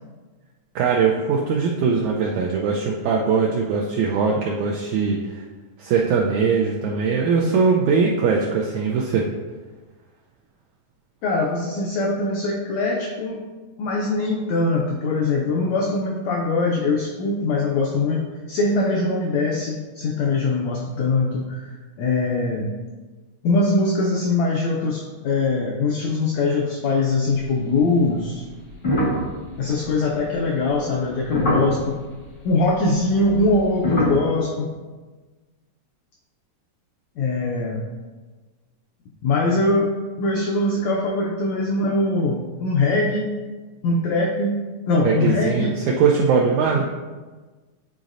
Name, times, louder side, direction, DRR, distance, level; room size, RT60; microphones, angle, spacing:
voice 1, 0.8-5.4 5.8-9.3 45.0-46.8, right 5 dB, 85° right, -1 dB, 1.6 m, -21 dB
voice 2, 11.2-13.4 13.8-22.7 23.4-28.4 29.6-32.0 32.4-34.7 37.2-37.8 39.2-39.9 40.2-43.3 43.8-44.6 44.9-45.7, left 2 dB, 85° left, -1 dB, 1.5 m, -22 dB
sound 1, 28.7-32.0 33.1-34.2, equal, 60° left, 0.6 m, -23 dB
10.0 x 4.0 x 2.5 m, 1.3 s
omnidirectional pair, 3.9 m